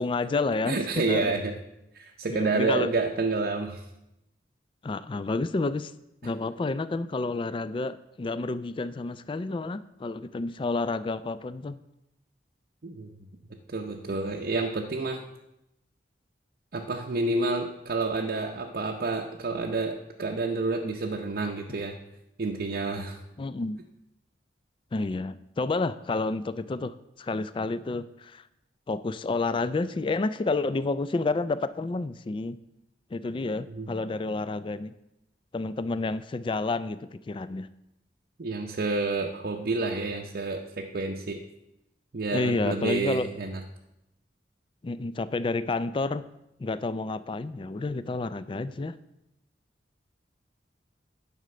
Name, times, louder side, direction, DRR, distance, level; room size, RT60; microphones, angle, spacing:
voice 1, 0.0-1.4 2.3-2.9 4.8-5.9 6.2-11.8 23.4-23.8 24.9-28.4 28.9-32.6 33.1-34.9 35.5-37.7 42.3-43.3 44.8-46.2 46.6-48.9, left 3 dB, 30° left, 15 dB, 0.3 m, -30 dB
voice 2, 0.7-1.5 1.9-3.8 12.8-13.1 13.7-15.2 16.7-22.0 22.4-23.2 33.7-33.9 38.4-41.4 42.1-43.6, right 3 dB, 55° right, 0 dB, 0.6 m, -29 dB
9.6 x 5.0 x 6.7 m, 0.87 s
head